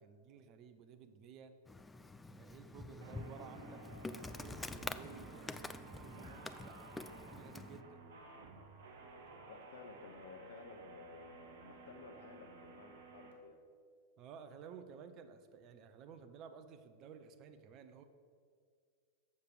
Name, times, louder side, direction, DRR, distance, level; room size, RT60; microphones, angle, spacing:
voice 1, 0.0-1.5 2.3-3.8 4.1-8.0 14.2-18.0, right 6 dB, 35° right, 9 dB, 0.6 m, -55 dB
Insect, 1.7-7.8, left 3 dB, 10° left, 0.3 m, -47 dB
sound 1, 3.0-13.3, right 4 dB, 60° right, 1.0 m, -54 dB
voice 2, 9.5-13.6, left 4 dB, 60° left, 6 dB, 0.9 m, -55 dB
7.3 x 6.7 x 6.3 m, 2.1 s
figure-of-eight pair, 90°, 0 cm